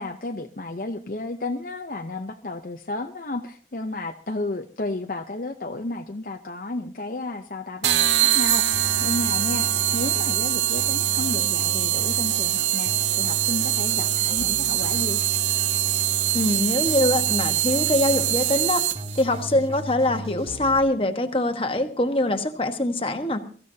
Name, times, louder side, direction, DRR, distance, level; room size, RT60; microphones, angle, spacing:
voice 1, 0.0-15.2, left 2 dB, 50° left, 4 dB, 0.8 m, -32 dB
sound 1, 7.8-19.2, right 12 dB, 85° right, 0.7 m, -23 dB
Keyboard (musical), 8.7-20.8, equal, 35° right, 1.9 m, -36 dB
voice 2, 16.3-18.8 19.1-23.4, left 1 dB, 30° left, 6 dB, 1.3 m, -23 dB
23.5 x 14.5 x 2.8 m, 0.41 s
head